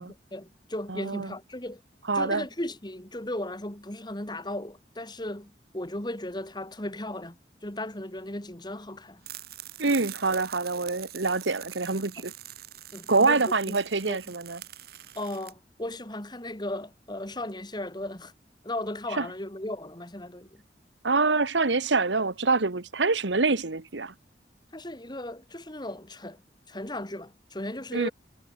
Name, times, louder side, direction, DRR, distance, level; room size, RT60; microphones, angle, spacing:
voice 1, 0.0-1.8 2.1-7.4 7.6-9.2 12.2-12.3 12.9-14.2 15.1-18.3 18.6-20.6 24.7-26.4 26.7-28.1, left 1 dB, 25° left, 2.9 m, -36 dB
voice 2, 0.9-1.3 2.1-2.4 9.8-12.3 13.1-14.6 19.2-19.3 21.0-24.1 27.9-28.1, right 3 dB, 90° right, 1.5 m, -25 dB
sound 1, 9.2-15.5, right 13 dB, 55° right, 1.6 m, -44 dB
head